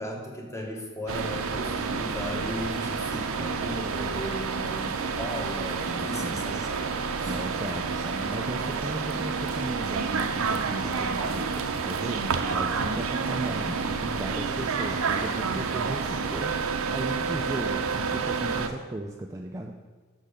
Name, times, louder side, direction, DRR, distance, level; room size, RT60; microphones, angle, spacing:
voice 1, 0.0-6.9 7.2-7.4, left 1 dB, 15° left, 0 dB, 1.1 m, -36 dB
sound 1, 1.1-18.7, right 5 dB, 80° right, 0.6 m, -29 dB
voice 2, 5.9-6.4 7.2-19.7, right 1 dB, 15° right, 1 dB, 0.3 m, -36 dB
6.6 x 6.2 x 5.0 m, 1.4 s
head